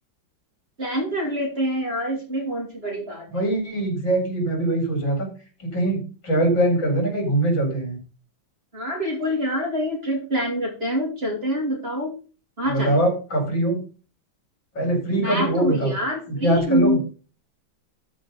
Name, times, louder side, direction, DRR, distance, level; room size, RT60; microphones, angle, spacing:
voice 1, 0.8-3.4 8.7-12.1 12.6-13.0 15.2-17.0, equal, 30° right, 0 dB, 3.5 m, -26 dB
voice 2, 3.3-5.3 5.6-8.0 12.7-13.8 14.8-16.0 16.3-17.0, right 1 dB, 70° left, 1 dB, 5.2 m, -22 dB
13.0 x 5.3 x 5.4 m, 0.35 s
omnidirectional pair, 2.1 m